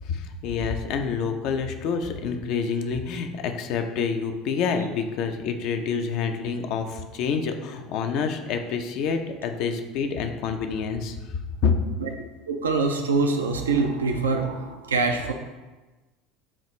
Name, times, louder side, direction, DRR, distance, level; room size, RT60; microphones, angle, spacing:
voice 1, 0.0-11.2 11.6-11.8, left 5 dB, 55° left, 6 dB, 0.5 m, -27 dB
voice 2, 12.5-15.3, right 4 dB, 80° right, 4 dB, 0.4 m, -24 dB
7.2 x 2.4 x 3.0 m, 1.2 s
figure-of-eight pair, 70°, 0 cm